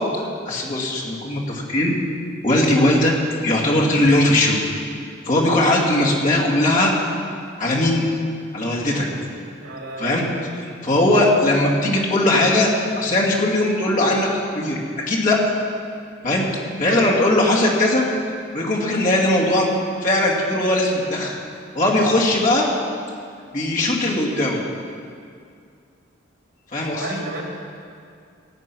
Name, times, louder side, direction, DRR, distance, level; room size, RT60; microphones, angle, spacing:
voice 1, 0.4-2.0 2.4-3.1 3.4-4.6 5.3-6.9 7.6-8.1 8.5-9.1 10.0-10.2 10.8-12.7 13.0-14.8 15.1-15.4 16.2-16.4 16.8-18.1 18.5-19.7 20.0-21.3 21.7-22.7 23.5-24.6 26.7-27.2, left 1 dB, 40° left, -4 dB, 2.5 m, -19 dB
voice 2, 9.6-10.4 16.8-17.1 26.9-27.4, right 2 dB, 80° right, -2 dB, 3.0 m, -31 dB
17.0 x 8.2 x 6.2 m, 2.3 s
head